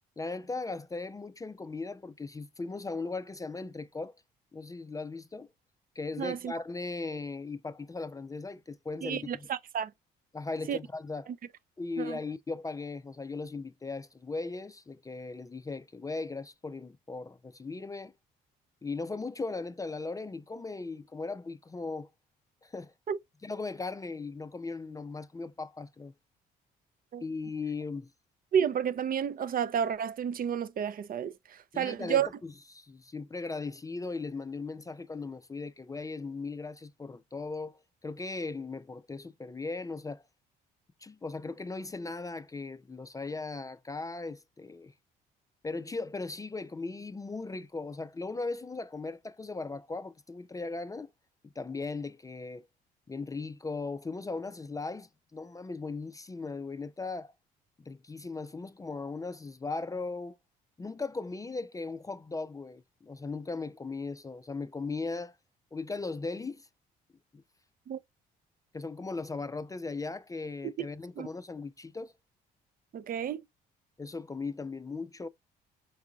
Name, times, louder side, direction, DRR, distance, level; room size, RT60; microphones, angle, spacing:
voice 1, 0.2-4.1 4.5-5.5 6.0-9.5 10.3-11.3 11.8-18.1 18.8-22.1 22.6-22.9 23.4-26.1 27.2-28.1 31.7-40.2 41.0-44.9 45.6-51.1 51.4-52.7 53.1-57.3 57.8-60.4 60.8-65.4 65.7-66.7 67.3-67.4 68.7-72.1 74.0-75.3, left 3 dB, 15° left, 0.4 m, -38 dB
voice 2, 6.2-6.5 9.0-9.9 10.7-10.8 12.0-12.2 23.1-23.2 27.1-27.2 28.5-31.3 31.8-32.3 67.9-68.0 70.6-70.7 71.2-71.3 72.9-73.4, right 8 dB, 45° right, 0.5 m, -30 dB
4.7 x 3.6 x 2.3 m
supercardioid pair, 65°, 20 cm